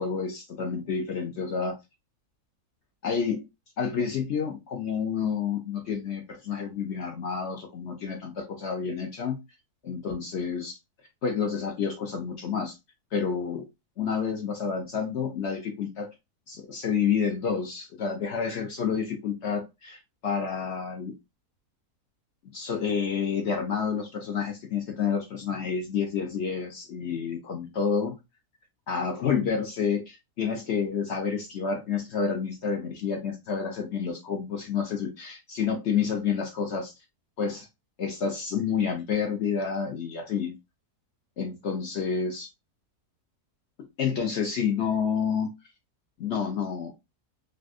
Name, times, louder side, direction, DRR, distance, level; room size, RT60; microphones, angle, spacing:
voice 1, 0.0-1.8 3.0-3.4 3.8-9.4 9.8-10.8 11.2-12.7 13.1-13.6 14.0-16.1 16.5-21.1 22.5-28.1 28.9-36.9 37.4-37.7 38.0-40.5 41.4-42.5 44.0-45.5 46.2-46.9, left 6 dB, 60° left, 0.8 m, -29 dB
3.4 x 2.5 x 2.4 m
omnidirectional pair, 1.6 m